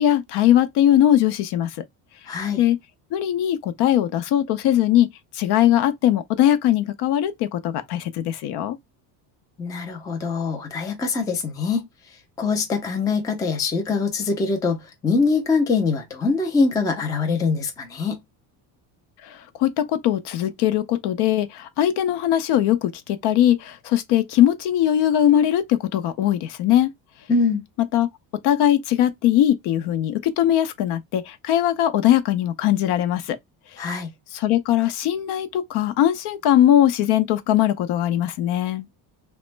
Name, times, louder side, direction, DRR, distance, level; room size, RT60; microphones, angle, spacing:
voice 1, 0.0-1.8 2.6-2.8 3.1-5.1 5.3-8.8 19.2-26.9 27.9-28.1 28.4-33.4 34.3-38.9, left 11 dB, 65° left, 0.6 m, -20 dB
voice 2, 2.3-2.6 9.6-11.9 12.4-18.2 27.3-27.6 33.8-34.1, left 4 dB, 10° left, 0.3 m, -23 dB
2.9 x 2.1 x 3.1 m
cardioid pair, 155°, 44 cm